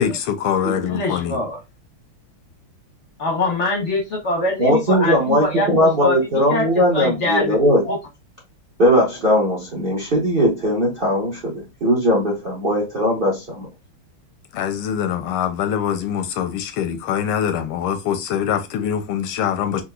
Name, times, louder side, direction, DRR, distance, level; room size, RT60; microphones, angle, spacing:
voice 1, 0.0-1.4 14.5-19.8, left 9 dB, 85° left, 1.5 m, -23 dB
voice 2, 0.9-1.6 3.2-6.7 6.9-7.6 7.9-8.0, left 2 dB, 55° left, 0.8 m, -23 dB
voice 3, 4.6-7.9 8.8-13.7, equal, 50° right, 0.6 m, -19 dB
3.9 x 2.6 x 2.2 m
omnidirectional pair, 2.4 m